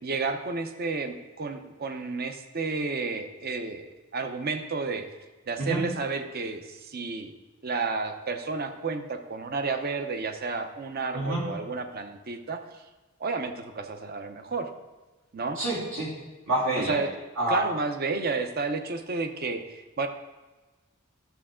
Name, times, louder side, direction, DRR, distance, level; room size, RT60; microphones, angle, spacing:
voice 1, 0.0-5.1 5.5-7.3 7.6-12.6 13.2-14.7 15.3-15.6 16.8-17.2 17.5-20.1, right 4 dB, 50° right, 7 dB, 0.7 m, -31 dB
voice 2, 15.6-16.1 16.5-17.0 17.4-17.6, right 1 dB, 75° right, -5 dB, 3.1 m, -27 dB
12.5 x 6.9 x 3.7 m, 1.2 s
head